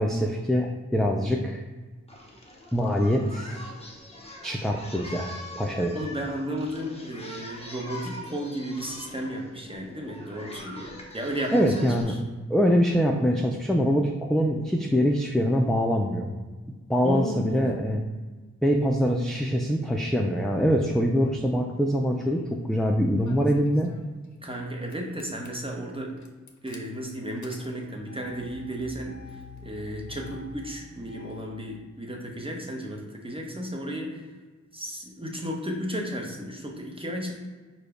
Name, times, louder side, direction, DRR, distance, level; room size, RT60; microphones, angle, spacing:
voice 1, 0.0-1.6 2.7-3.6 4.4-6.0 11.5-12.2 12.5-16.3 16.9-18.0 18.6-23.9, equal, ahead, 1 dB, 0.3 m, -24 dB
Singing, 2.1-12.0, left 1 dB, 20° left, 0.8 m, -43 dB
voice 2, 5.9-12.2 17.0-17.8 24.4-26.2 26.6-34.2 34.7-37.3, equal, 20° right, 0 dB, 0.8 m, -34 dB
Engine starting, 21.9-22.5 23.2-24.6 24.9-25.5 26.2-31.5, left 3 dB, 70° left, 0.6 m, -46 dB
4.8 x 2.2 x 4.8 m, 1.3 s
wide cardioid pair, 70°, 30 cm